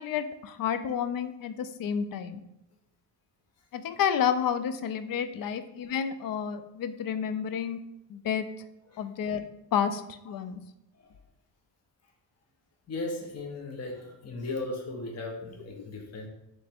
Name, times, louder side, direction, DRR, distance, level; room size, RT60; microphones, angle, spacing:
voice 1, 0.0-2.4 3.7-7.8 8.1-8.5 9.0-9.5 9.7-10.6, left 8 dB, 55° left, 11 dB, 0.4 m, -30 dB
voice 2, 12.9-16.3, left 2 dB, 35° left, 1 dB, 0.9 m, -36 dB
3.2 x 3.2 x 4.2 m, 0.87 s
cardioid pair, 85°, 43 cm